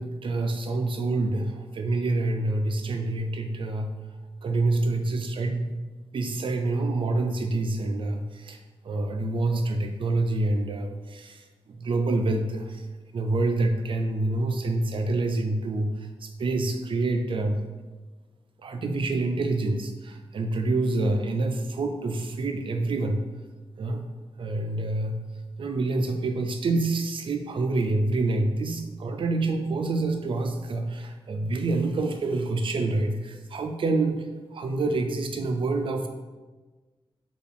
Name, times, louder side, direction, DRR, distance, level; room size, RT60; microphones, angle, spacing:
voice 1, 0.0-3.9 4.4-5.7 6.1-8.6 8.8-11.4 11.7-12.8 13.1-15.9 16.2-17.6 18.6-23.2 23.8-24.0 24.4-25.2 25.6-34.2 34.5-36.1, right 2 dB, 60° right, 5 dB, 0.4 m, -27 dB
4.5 x 2.4 x 3.4 m, 1.3 s
wide cardioid pair, 135°, 10 cm